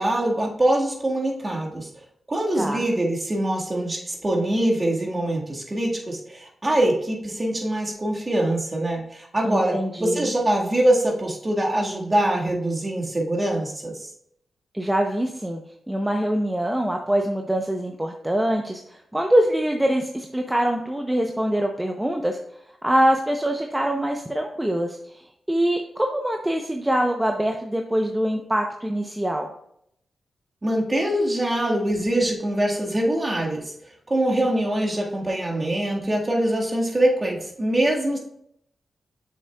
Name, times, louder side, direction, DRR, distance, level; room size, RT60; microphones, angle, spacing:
voice 1, 0.0-1.9 2.3-14.1 30.6-33.7 34.1-38.2, right 1 dB, 35° right, -1 dB, 1.8 m, -23 dB
voice 2, 9.4-10.3 14.7-15.6 15.9-22.4 22.8-29.5, right 1 dB, 15° right, 3 dB, 0.7 m, -24 dB
7.2 x 6.5 x 2.3 m, 0.73 s
supercardioid pair, 40°, 0 cm